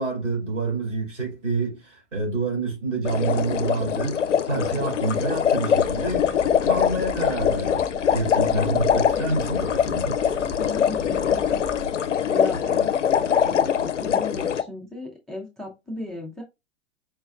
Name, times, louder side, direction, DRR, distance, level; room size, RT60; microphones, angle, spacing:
voice 1, 0.0-6.3 6.6-10.4, right 3 dB, 75° right, 2.7 m, -28 dB
sound 1, 3.1-14.6, left 8 dB, 90° left, 0.5 m, -23 dB
sound 2, 5.8-11.9, right 2 dB, 35° right, 0.8 m, -40 dB
voice 2, 10.6-11.6 12.1-16.4, left 2 dB, ahead, 0.3 m, -36 dB
4.7 x 3.0 x 2.3 m
figure-of-eight pair, 100°, 36 cm